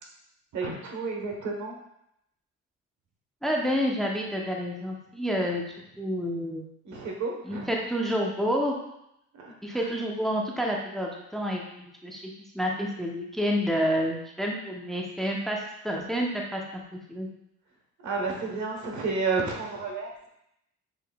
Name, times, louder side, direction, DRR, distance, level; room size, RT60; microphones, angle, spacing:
voice 1, 0.5-1.8 6.8-7.8 9.3-9.9 18.0-20.3, right 4 dB, 65° right, 0 dB, 1.2 m, -31 dB
voice 2, 3.4-5.6 6.0-6.6 7.4-8.8 9.6-16.8 17.1-17.3, equal, ahead, -1 dB, 0.7 m, -29 dB
6.7 x 3.1 x 2.3 m, 0.79 s
supercardioid pair, 75°, 31 cm